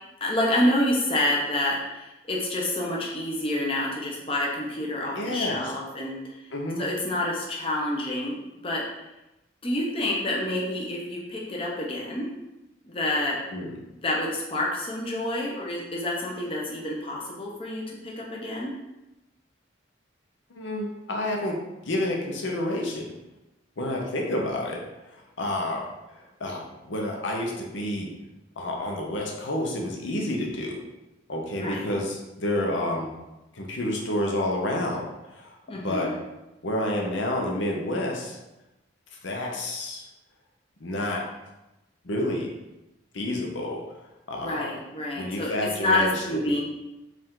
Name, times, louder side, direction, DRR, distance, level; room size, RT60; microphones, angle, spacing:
voice 1, 0.2-6.5 6.8-8.4 8.6-8.8 9.6-12.3 12.8-13.4 14.0-18.7 31.6-31.9 35.7-36.2 44.4-45.5 45.8-46.6, left 1 dB, 30° left, -3 dB, 0.7 m, -28 dB
voice 2, 5.2-5.6 6.5-6.8 13.5-13.7 20.5-21.6 21.8-23.1 23.8-24.8 25.1-25.9 26.1-28.1 28.6-30.8 31.3-33.1 33.5-36.1 36.6-38.4 39.2-40.1 40.8-41.3 42.0-42.5 43.1-43.8 44.3-44.7 45.1-46.6, left 1 dB, 75° left, 0 dB, 0.7 m, -29 dB
4.9 x 2.5 x 3.7 m, 0.98 s
head